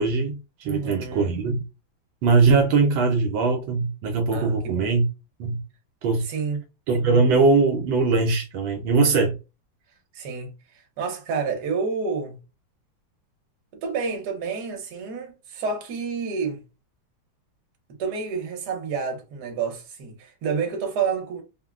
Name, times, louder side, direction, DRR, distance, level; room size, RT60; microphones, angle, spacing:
voice 1, 0.0-1.6 2.2-5.0 5.4-5.6 6.0-6.3 6.9-9.3, right 4 dB, 80° right, 1.3 m, -21 dB
voice 2, 0.6-1.3 4.3-4.9 6.2-6.6 10.1-12.4 13.8-16.6 18.0-21.4, right 5 dB, 60° right, 1.3 m, -29 dB
3.6 x 2.1 x 2.2 m
omnidirectional pair, 2.1 m